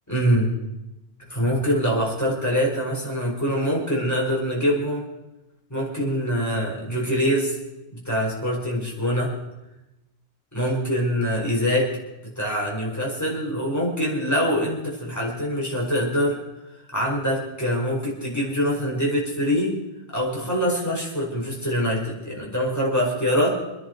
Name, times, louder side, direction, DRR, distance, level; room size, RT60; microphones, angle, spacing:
voice 1, 0.1-0.5 1.3-5.0 5.7-7.6 7.9-9.3 10.5-11.9 12.4-16.4 16.9-19.7 20.1-23.5, equal, 15° left, -3 dB, 5.1 m, -24 dB
27.5 x 10.5 x 4.7 m, 0.95 s
omnidirectional pair, 1.2 m